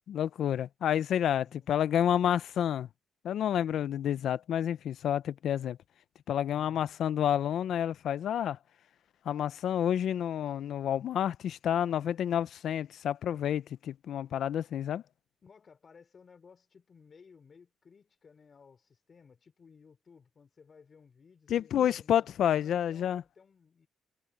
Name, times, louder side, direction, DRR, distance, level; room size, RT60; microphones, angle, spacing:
voice 1, 0.1-2.9 3.2-5.8 6.3-8.6 9.3-15.0 21.5-23.2, left 10 dB, 70° left, 0.6 m, -29 dB
voice 2, 1.4-1.7 15.4-23.9, left 5 dB, 40° left, 4.1 m, -58 dB
cardioid pair, 90°, 0 cm